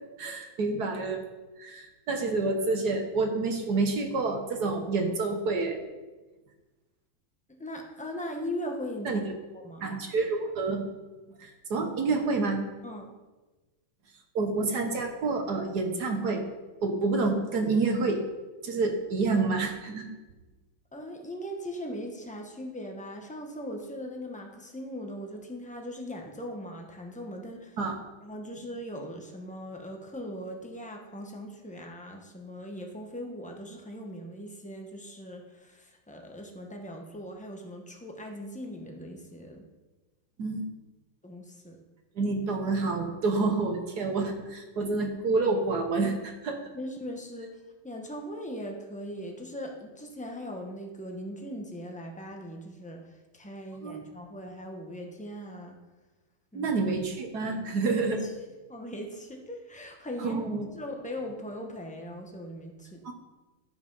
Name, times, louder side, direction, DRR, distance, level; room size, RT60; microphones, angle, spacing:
voice 1, 0.2-1.2 1.6-5.8 9.0-9.2 9.8-10.8 11.4-12.6 14.3-16.4 16.8-18.2 18.6-20.1 27.8-27.9 40.4-40.7 42.1-46.7 53.8-54.0 56.5-58.2 60.2-60.7 63.0-63.1, right 3 dB, 55° right, 4 dB, 1.4 m, -28 dB
voice 2, 7.6-9.3 9.6-9.8 12.8-13.1 20.9-27.8 28.2-39.6 41.2-41.8 46.7-47.5 47.8-53.0 53.3-55.8 56.5-56.7 58.2-58.3 58.7-60.4 60.7-63.0, equal, 10° left, 2 dB, 0.4 m, -39 dB
12.0 x 5.7 x 5.5 m, 1.2 s
omnidirectional pair, 2.3 m